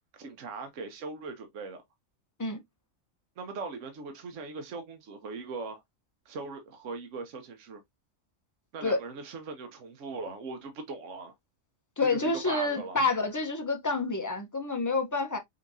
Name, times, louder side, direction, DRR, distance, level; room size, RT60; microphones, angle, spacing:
voice 1, 0.1-1.8 3.4-5.8 6.3-7.8 8.7-11.3 12.1-13.0, right 4 dB, 75° right, 1.2 m, -40 dB
voice 2, 12.0-15.4, left 3 dB, 20° left, 0.6 m, -28 dB
5.2 x 2.9 x 2.6 m
omnidirectional pair, 1.3 m